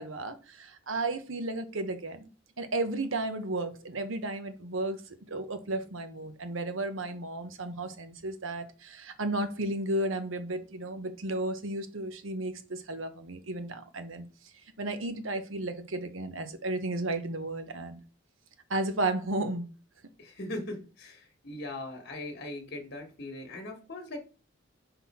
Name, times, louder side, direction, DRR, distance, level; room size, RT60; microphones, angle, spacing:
voice 1, 0.0-2.3 2.6-5.0 5.3-14.2 14.8-18.0 18.7-19.7, right 2 dB, 80° right, 1.0 m, -33 dB
voice 2, 20.2-24.2, left 1 dB, 55° left, 1.4 m, -40 dB
5.8 x 3.9 x 4.2 m
head